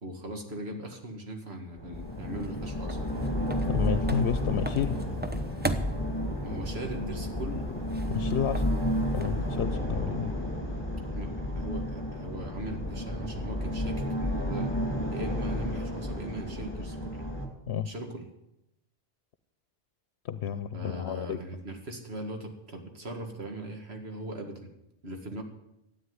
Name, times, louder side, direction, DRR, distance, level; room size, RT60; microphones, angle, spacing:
voice 1, 0.0-3.0 6.4-7.7 11.1-14.7 15.1-17.2 17.8-18.3 20.7-24.7 25.0-25.4, right 1 dB, 70° right, 4 dB, 2.3 m, -39 dB
sound 1, 1.8-17.5, equal, 20° left, 2.3 m, -31 dB
sound 2, 1.9-9.6, right 1 dB, 10° right, 0.7 m, -40 dB
voice 2, 3.7-5.0 8.1-8.7 9.1-10.3 17.7-17.9 20.2-21.4, left 8 dB, 75° left, 12 dB, 0.9 m, -31 dB
13.0 x 9.0 x 9.6 m, 0.87 s
omnidirectional pair, 1.1 m